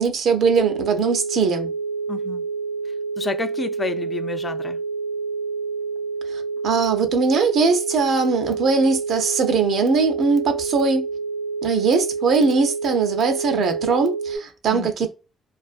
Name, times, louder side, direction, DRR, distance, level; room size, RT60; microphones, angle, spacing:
voice 1, 0.0-1.7 6.3-11.0 11.6-15.1, right 4 dB, 65° right, 0.5 m, -20 dB
sound 1, 0.6-14.4, right 4 dB, 80° left, 0.8 m, -28 dB
voice 2, 2.1-2.4 3.2-4.8 14.7-15.1, left 3 dB, 30° left, 0.3 m, -30 dB
2.4 x 2.2 x 2.4 m
cardioid pair, 90°, 0 cm